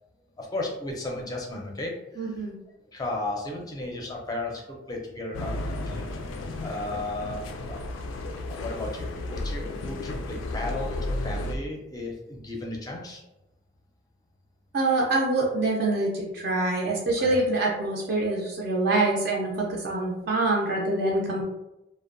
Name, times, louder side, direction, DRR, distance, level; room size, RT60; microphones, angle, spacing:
voice 1, 0.4-2.4 2.9-4.6 4.9-6.0 6.6-7.8 8.5-13.2 17.2-17.4, left 2 dB, 20° left, 0 dB, 0.4 m, -34 dB
voice 2, 2.2-2.6 14.7-21.4, right 2 dB, 60° right, -3 dB, 0.4 m, -25 dB
sound 1, 5.3-11.6, left 2 dB, 90° left, 0.3 m, -33 dB
2.7 x 2.0 x 2.5 m, 0.95 s
head